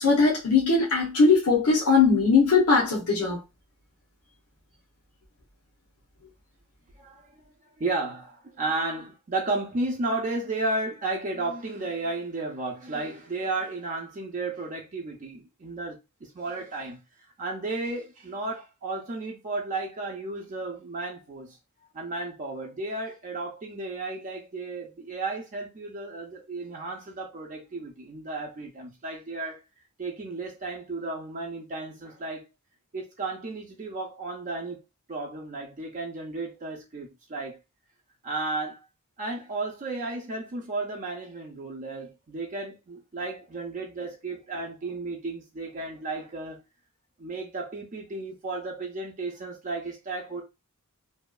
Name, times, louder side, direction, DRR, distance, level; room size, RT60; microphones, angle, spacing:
voice 1, 0.0-3.4, left 4 dB, 90° left, 0.8 m, -20 dB
voice 2, 7.0-7.4 7.8-17.0 17.4-21.6 21.9-29.6 30.0-32.4 32.9-34.8 35.1-37.6 38.2-38.8 39.2-46.6 47.2-50.4, right 2 dB, 35° right, 0.5 m, -33 dB
2.7 x 2.3 x 2.2 m
head